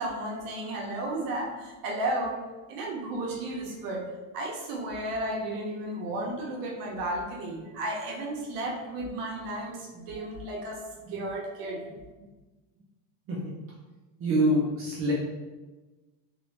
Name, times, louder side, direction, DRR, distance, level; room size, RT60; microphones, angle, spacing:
voice 1, 0.0-2.4 2.7-4.0 4.3-10.8 11.1-11.9, right 1 dB, 45° right, -1 dB, 0.8 m, -33 dB
voice 2, 14.2-15.1, right 1 dB, 30° right, -5 dB, 0.4 m, -26 dB
3.1 x 2.6 x 3.3 m, 1.2 s
cardioid pair, 165°, 47 cm